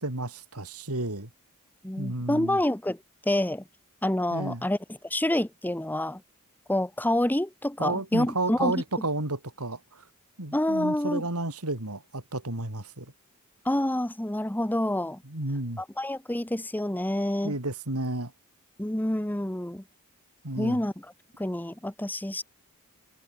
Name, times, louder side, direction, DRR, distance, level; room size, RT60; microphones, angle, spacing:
voice 1, 0.0-1.3 2.0-2.6 4.3-4.6 7.8-10.0 10.4-13.1 15.2-15.8 17.4-18.3 20.4-20.9, right 2 dB, 80° right, 4.3 m, -32 dB
voice 2, 1.8-3.0 3.2-3.6 4.0-4.8 5.0-6.2 6.7-8.8 10.5-11.2 13.6-15.2 15.8-17.5 18.8-19.8 20.6-20.9 21.4-22.4, left 1 dB, 10° left, 0.9 m, -27 dB
head